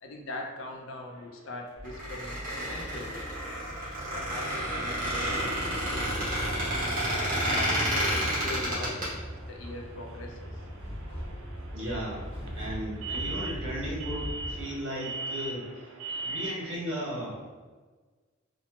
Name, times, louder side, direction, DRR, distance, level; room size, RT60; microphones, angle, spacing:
voice 1, 0.0-3.3 4.1-5.6 5.9-6.7 7.2-10.6, left 2 dB, 60° left, 2 dB, 0.4 m, -41 dB
sound 1, 1.1-16.7, right 3 dB, 80° right, 0.4 m, -43 dB
sound 2, 1.8-14.6, equal, 20° right, 1.3 m, -41 dB
Squeak, 1.8-9.1, equal, 40° right, 1.0 m, -30 dB
voice 2, 11.7-15.6 16.2-17.4, equal, 60° right, -6 dB, 1.1 m, -35 dB
3.0 x 2.0 x 2.9 m, 1.4 s
head